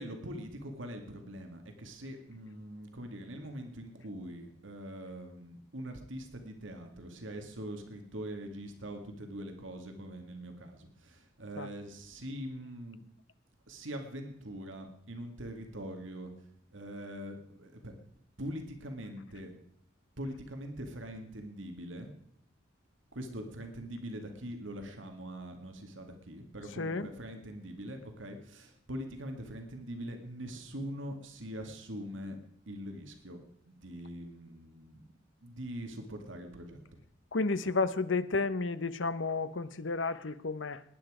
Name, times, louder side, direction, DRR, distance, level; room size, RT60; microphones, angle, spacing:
voice 1, 0.0-13.0 13.7-16.3 16.7-17.9 18.4-19.5 20.2-22.1 23.1-32.4 32.7-33.4 33.7-35.0 35.4-36.8, equal, 80° right, 5 dB, 2.2 m, -43 dB
voice 2, 26.8-27.1 37.3-40.8, left 3 dB, 75° left, 14 dB, 0.9 m, -32 dB
20.0 x 10.0 x 5.0 m, 0.75 s
head